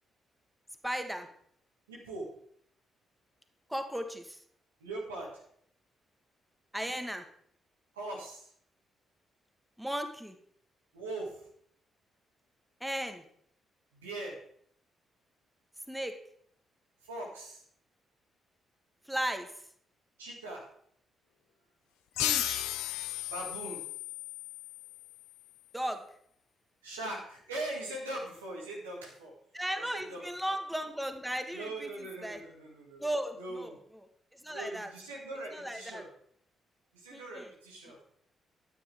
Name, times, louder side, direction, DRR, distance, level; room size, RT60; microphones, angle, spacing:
voice 1, 0.8-1.3 3.7-4.4 6.7-7.3 9.8-10.4 12.8-13.2 15.9-16.2 19.1-19.5 22.2-22.7 25.7-26.0 29.5-31.9 32.2-32.4 33.0-33.7 34.4-34.9 35.5-36.0 37.1-37.5, equal, 5° right, 7 dB, 1.6 m, -36 dB
voice 2, 1.9-2.3 4.8-5.4 7.9-8.5 10.9-11.5 13.9-14.4 17.0-17.6 20.2-20.7 23.2-23.8 26.8-29.3 29.7-30.2 31.5-33.0 33.4-33.8 34.5-36.1 36.9-38.0, right 2 dB, 85° right, -2 dB, 2.3 m, -41 dB
sound 1, 22.2-25.4, left 13 dB, 75° left, 0.6 m, -35 dB
12.5 x 9.4 x 3.6 m, 0.65 s
hypercardioid pair, 40°, 0 cm